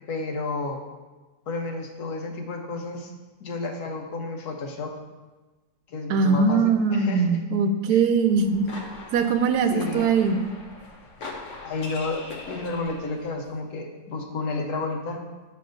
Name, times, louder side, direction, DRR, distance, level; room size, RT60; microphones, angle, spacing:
voice 1, 0.1-0.8 1.5-3.1 3.4-4.9 5.9-7.4 7.9-8.0 9.7-10.1 11.6-15.2, left 3 dB, 90° left, 2 dB, 1.4 m, -31 dB
voice 2, 6.1-8.7 9.1-10.4, right 5 dB, 85° right, 8 dB, 1.1 m, -21 dB
sound 1, 8.3-13.3, left 2 dB, 55° left, 1.2 m, -40 dB
8.7 x 6.0 x 2.6 m, 1.2 s
omnidirectional pair, 1.6 m